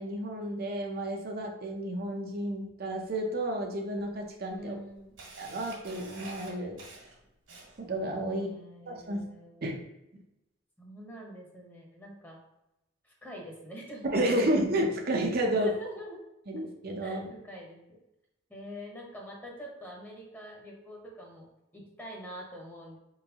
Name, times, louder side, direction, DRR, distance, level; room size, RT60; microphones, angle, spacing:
voice 1, 0.0-4.7 5.4-6.8 7.8-8.5 8.9-9.2 9.6-9.8 14.0-15.7 16.5-17.3, right 1 dB, 50° right, 2 dB, 0.6 m, -31 dB
Camera, 4.0-4.1 4.5-8.0, right 2 dB, 85° right, 1.6 m, -47 dB
voice 2, 4.6-5.1 8.3-9.8 10.8-12.4 13.0-14.5 15.6-16.2 17.0-18.0 18.5-21.5 21.7-23.0, equal, 10° left, -1 dB, 1.0 m, -45 dB
4.7 x 3.8 x 2.9 m, 0.91 s
head